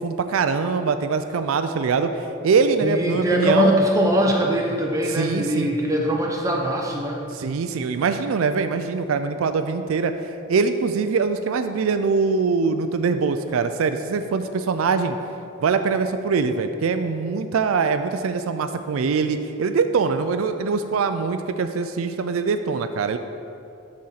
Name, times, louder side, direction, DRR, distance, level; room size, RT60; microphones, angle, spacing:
voice 1, 0.0-3.8 5.1-5.7 7.3-10.1 10.5-15.2 15.6-23.2, right 5 dB, 75° right, 9 dB, 0.4 m, -23 dB
voice 2, 2.8-7.2, equal, 15° right, 0 dB, 0.8 m, -21 dB
12.5 x 4.3 x 4.0 m, 2.7 s
head